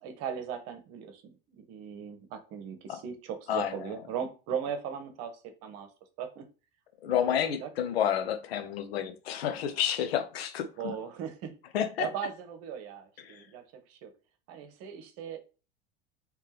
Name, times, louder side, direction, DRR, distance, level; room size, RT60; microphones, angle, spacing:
voice 1, 0.0-5.9 6.2-6.5 7.2-7.7 10.8-11.5 12.0-14.1 14.5-15.4, right 8 dB, 50° right, 7 dB, 1.0 m, -38 dB
voice 2, 3.5-3.9 7.0-10.9 11.7-12.1 13.2-13.5, left 9 dB, 70° left, 8 dB, 0.8 m, -30 dB
3.3 x 3.2 x 3.3 m, 0.33 s
figure-of-eight pair, 75°, 31 cm